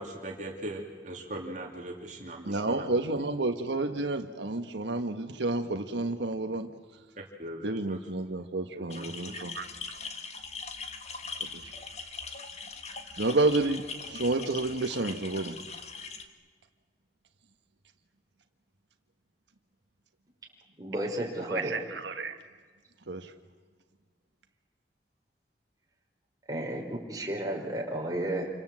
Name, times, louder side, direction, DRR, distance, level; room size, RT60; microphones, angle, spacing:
voice 1, 0.0-2.8 7.2-8.0 8.7-9.1, right 1 dB, 45° right, 1 dB, 2.7 m, -40 dB
voice 2, 2.4-6.7 7.6-9.7 11.5-11.7 13.2-15.6 21.5-22.4 23.1-23.3, right 2 dB, 90° right, 6 dB, 1.4 m, -30 dB
sound 1, 8.9-16.2, left 5 dB, 40° left, 1.7 m, -41 dB
voice 3, 20.8-21.8 26.5-28.5, right 1 dB, 20° right, -1 dB, 4.9 m, -32 dB
28.0 x 25.5 x 7.7 m, 1.5 s
head